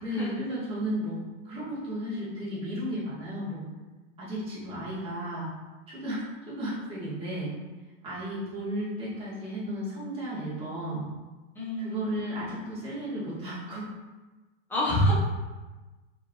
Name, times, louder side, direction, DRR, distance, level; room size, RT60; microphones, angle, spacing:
voice 1, 0.0-3.6 4.2-5.5 5.9-7.5 8.0-11.0 11.8-13.9, equal, 15° right, -9 dB, 1.4 m, -34 dB
voice 2, 11.5-12.1 14.7-15.1, equal, 5° left, -7 dB, 0.6 m, -27 dB
4.5 x 3.7 x 2.3 m, 1.2 s
supercardioid pair, 160°, 36 cm